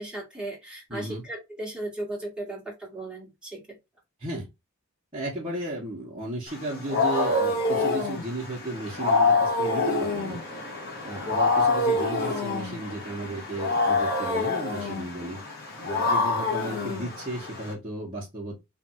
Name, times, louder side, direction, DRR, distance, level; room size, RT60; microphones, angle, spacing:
voice 1, 0.0-3.8 10.5-10.6, right 1 dB, 5° right, 1.8 m, -36 dB
voice 2, 0.9-1.2 4.2-4.5 5.1-10.4 11.0-15.4 15.8-18.5, right 1 dB, 25° right, 1.3 m, -34 dB
Wild animals, 6.5-17.7, left 3 dB, 50° left, 1.5 m, -26 dB
3.4 x 2.6 x 4.5 m
head